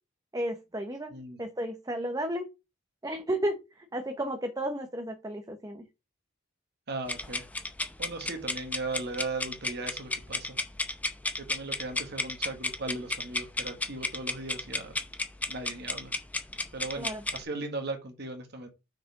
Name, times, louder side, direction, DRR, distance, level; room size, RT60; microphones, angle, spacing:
voice 1, 0.3-1.1 1.4-2.5 3.0-5.8 17.0-17.2, right 1 dB, 15° right, 0.9 m, -33 dB
voice 2, 6.9-7.4 8.0-10.6 11.5-15.0 15.5-16.1 16.7-18.7, right 2 dB, 55° right, 1.5 m, -37 dB
sound 1, 7.1-17.4, left 2 dB, 5° left, 0.7 m, -33 dB
6.2 x 4.9 x 4.7 m
head